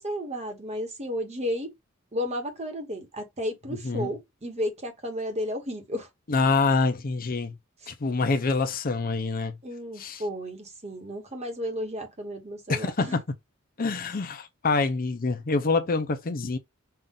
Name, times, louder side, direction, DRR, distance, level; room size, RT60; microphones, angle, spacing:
voice 1, 0.0-1.7 2.1-6.1 7.8-7.9 9.6-13.2, equal, 30° right, 1.3 m, -33 dB
voice 2, 6.3-7.5 7.9-9.5 10.0-10.2 12.7-13.1 13.8-16.6, left 3 dB, 45° left, 0.6 m, -26 dB
5.6 x 2.5 x 3.8 m
head